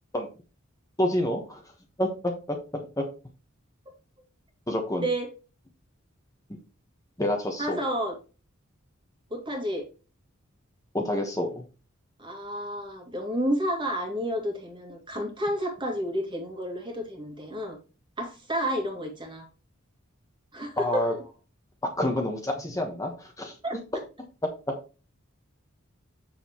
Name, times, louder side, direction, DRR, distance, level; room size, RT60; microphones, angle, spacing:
voice 1, 1.0-1.6 2.0-3.0 4.7-5.0 7.2-7.8 10.9-11.6 20.8-21.1 21.8-23.8 24.7-24.8, left 1 dB, 15° left, 2 dB, 1.2 m, -28 dB
voice 2, 5.0-5.3 7.6-8.2 9.3-9.9 12.2-17.8 18.2-19.5 20.5-21.2 23.6-23.7, equal, 25° right, 3 dB, 2.2 m, -30 dB
7.8 x 6.8 x 3.0 m, 0.32 s
head